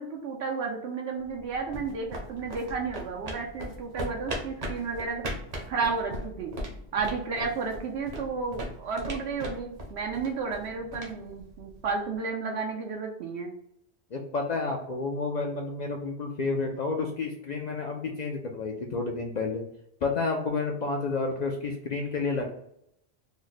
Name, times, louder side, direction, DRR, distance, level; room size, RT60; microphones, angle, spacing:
voice 1, 0.0-5.2 5.7-6.5 6.9-13.5, right 4 dB, 80° right, 0 dB, 0.9 m, -32 dB
sound 1, 1.3-12.1, equal, 40° right, 0.7 m, -39 dB
voice 2, 14.1-19.6 20.0-22.5, left 3 dB, 55° left, 2 dB, 0.5 m, -30 dB
3.1 x 2.1 x 3.9 m, 0.73 s
omnidirectional pair, 1.1 m